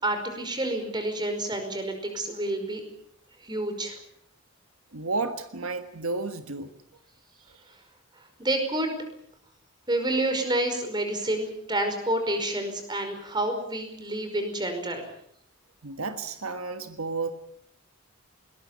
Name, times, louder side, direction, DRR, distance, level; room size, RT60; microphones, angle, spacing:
voice 1, 0.0-2.8 3.4-4.0 8.1-8.9 9.9-15.1, right 1 dB, 20° right, 5.1 m, -29 dB
voice 2, 4.9-6.7 15.8-17.3, right 3 dB, 85° right, 1.6 m, -32 dB
21.5 x 20.5 x 8.3 m
head